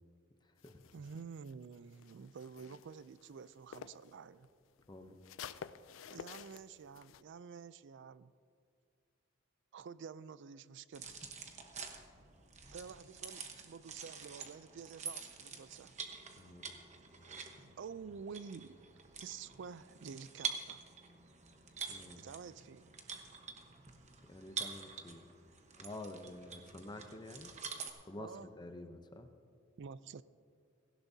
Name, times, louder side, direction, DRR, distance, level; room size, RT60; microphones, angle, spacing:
voice 1, 0.4-0.8 4.9-5.2 16.4-16.8 21.9-22.2 24.3-25.3 25.8-27.5 28.1-29.3, left 2 dB, 20° left, 7 dB, 0.7 m, -49 dB
sound 1, 0.6-4.1 4.4-7.2, left 7 dB, 70° left, 0.4 m, -51 dB
voice 2, 0.9-4.5 6.1-8.3 9.7-11.2 12.7-15.9 17.8-18.8 19.2-20.9 22.2-22.9 28.2-28.5 29.8-30.2, right 6 dB, 65° right, 17 dB, 0.4 m, -49 dB
sound 2, 10.9-27.9, right 5 dB, 35° right, 1.1 m, -47 dB
17.5 x 16.0 x 2.8 m, 2.3 s
head